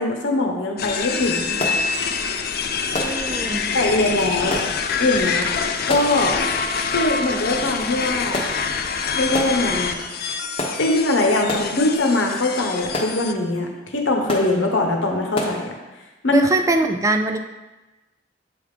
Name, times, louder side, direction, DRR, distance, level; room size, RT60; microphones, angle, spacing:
voice 1, 0.0-1.6 3.7-4.6 5.0-5.5 5.9-6.4 6.9-8.4 9.1-9.9 10.8-15.7 16.2-16.4, left 2 dB, 80° left, 2 dB, 1.1 m, -21 dB
sound 1, 0.6-0.7 1.1-15.7, left 1 dB, 30° left, 0.9 m, -33 dB
sound 2, 0.8-13.3, left 5 dB, 55° left, 0.5 m, -26 dB
voice 2, 3.0-3.7 16.3-17.4, right 2 dB, 15° right, 6 dB, 0.3 m, -21 dB
7.6 x 3.6 x 4.9 m, 1.1 s
head